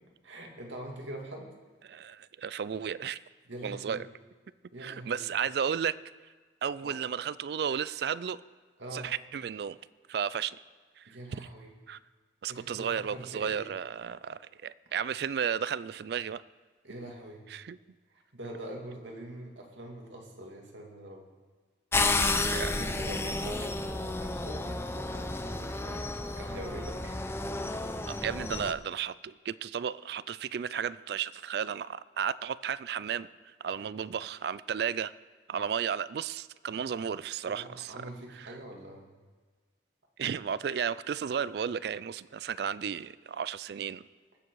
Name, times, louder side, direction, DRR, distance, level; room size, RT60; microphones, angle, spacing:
voice 1, 0.2-1.5 3.5-4.0 4.7-5.2 6.8-7.0 8.8-9.1 11.1-11.7 12.5-13.6 16.8-17.4 18.1-21.3 22.5-27.3 33.8-33.9 37.5-39.1, right 1 dB, 85° right, 0 dB, 2.3 m, -44 dB
voice 2, 1.8-3.2 3.6-4.1 4.8-6.0 6.6-8.4 8.9-9.8 10.1-10.6 11.0-11.2 11.9-12.0 12.4-16.4 17.5-17.8 22.2-22.7 28.1-33.3 33.6-35.1 35.5-38.1 38.4-38.5 40.2-44.0, right 7 dB, 60° right, 18 dB, 0.3 m, -33 dB
sound 1, 21.9-28.7, left 2 dB, 15° left, 0.5 m, -31 dB
20.0 x 7.5 x 4.7 m, 1.4 s
head